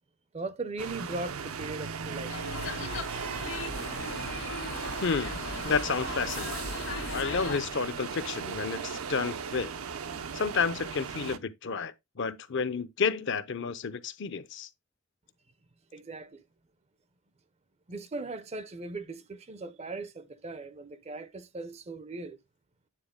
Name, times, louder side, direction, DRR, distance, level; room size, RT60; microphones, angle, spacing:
voice 1, 0.3-2.3 15.9-16.4 17.9-22.4, right 3 dB, 30° right, 0.5 m, -39 dB
sound 1, 0.8-11.4, right 6 dB, 80° right, 0.6 m, -37 dB
sound 2, 2.3-7.6, left 3 dB, 75° left, 1.7 m, -38 dB
voice 2, 5.0-6.5 7.1-9.7 10.3-14.7, left 5 dB, 55° left, 0.6 m, -31 dB
9.1 x 3.9 x 3.6 m
head